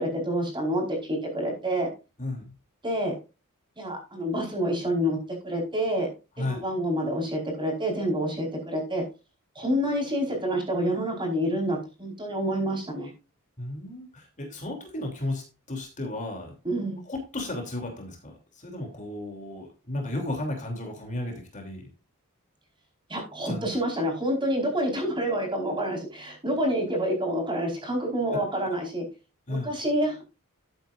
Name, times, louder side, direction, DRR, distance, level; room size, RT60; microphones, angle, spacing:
voice 1, 0.0-1.9 2.8-3.1 3.8-5.2 5.4-6.1 6.4-9.0 9.5-13.1 16.6-17.0 23.1-29.0 29.5-30.3, equal, 20° right, 0 dB, 4.7 m, -28 dB
voice 2, 2.2-2.5 6.4-6.6 13.6-16.5 17.0-21.9 23.5-23.7 28.3-28.7 29.5-29.7, left 1 dB, 35° left, 2 dB, 3.1 m, -34 dB
13.0 x 9.0 x 2.6 m, 0.29 s
head